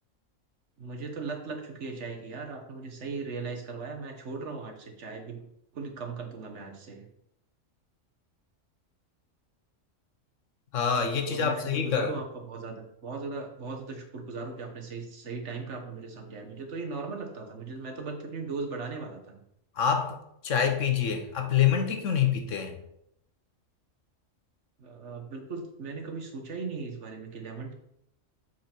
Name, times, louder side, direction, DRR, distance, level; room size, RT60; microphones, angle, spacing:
voice 1, 0.8-5.4 5.7-7.1 11.2-19.4 24.8-27.7, right 4 dB, 65° right, 2 dB, 1.5 m, -38 dB
voice 2, 10.7-12.1 19.8-20.2 20.4-22.8, left 7 dB, 70° left, 5 dB, 1.3 m, -26 dB
7.7 x 4.6 x 4.4 m, 0.78 s
omnidirectional pair, 1.3 m